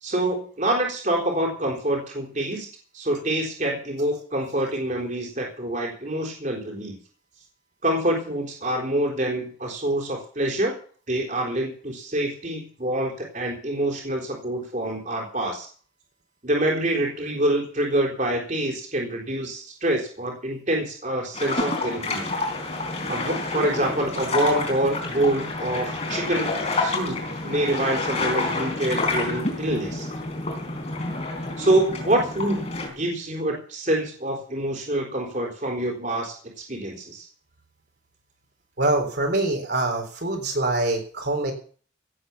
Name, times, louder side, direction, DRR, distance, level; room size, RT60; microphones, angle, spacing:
voice 1, 0.0-2.7 2.9-7.0 7.8-10.8 11.1-15.7 16.4-22.3 23.1-30.1 31.6-32.7 33.0-37.3, right 1 dB, 40° right, 0 dB, 4.0 m, -26 dB
sound 1, 21.3-32.9, left 2 dB, 30° left, 4.2 m, -28 dB
voice 2, 38.8-41.5, right 2 dB, 55° right, 2 dB, 3.9 m, -24 dB
17.0 x 8.5 x 7.1 m, 0.43 s
head